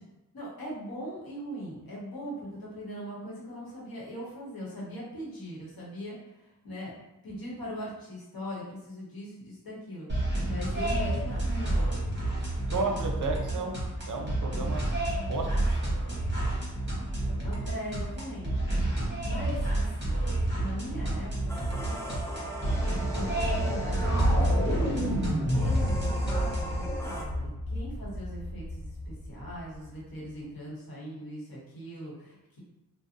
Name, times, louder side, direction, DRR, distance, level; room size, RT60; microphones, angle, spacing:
voice 1, 0.3-6.9 7.2-10.1 10.5-11.9 12.9-13.1 17.4-18.7 19.2-20.2 20.5-21.3 21.6-21.8 22.9-24.9 25.5-32.6, equal, 85° left, -6 dB, 0.9 m, -40 dB
sound 1, 10.1-26.8, right 1 dB, 30° right, 0.8 m, -30 dB
voice 2, 12.7-13.8 14.1-16.0 19.0-19.2, right 3 dB, 60° right, 2 dB, 0.5 m, -34 dB
sound 2, 21.5-27.2, right 1 dB, 10° left, 0.4 m, -39 dB
sound 3, 23.9-30.0, equal, 40° left, 0.7 m, -29 dB
2.5 x 2.0 x 2.7 m, 0.99 s
wide cardioid pair, 60°, 35 cm